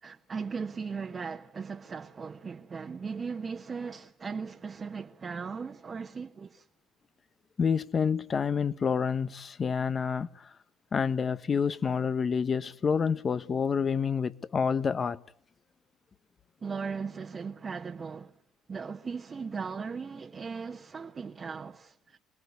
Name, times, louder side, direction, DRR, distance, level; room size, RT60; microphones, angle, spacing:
voice 1, 0.0-6.7 16.6-18.3 18.7-22.2, right 5 dB, 35° right, 1.3 m, -38 dB
voice 2, 7.6-10.5 10.9-15.2, left 6 dB, 40° left, 1.1 m, -28 dB
25.5 x 19.5 x 9.5 m
supercardioid pair, 70°, 0 cm